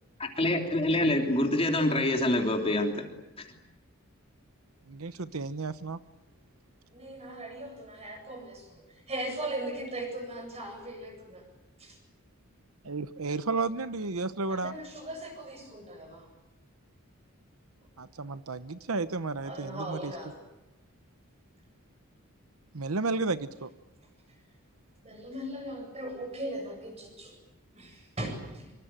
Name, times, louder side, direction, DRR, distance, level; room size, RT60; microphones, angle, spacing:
voice 1, 0.2-3.0 3.4-3.5, left 1 dB, 25° left, 3 dB, 3.2 m, -26 dB
voice 2, 4.9-6.0 12.8-14.8 18.0-20.1 22.7-23.7, right 3 dB, 85° right, 13 dB, 0.9 m, -32 dB
voice 3, 6.9-11.4 11.8-12.0 14.5-16.3 19.4-20.4 25.0-27.4 27.7-28.7, right 1 dB, 30° right, 5 dB, 7.9 m, -39 dB
25.5 x 25.0 x 9.0 m, 0.94 s
head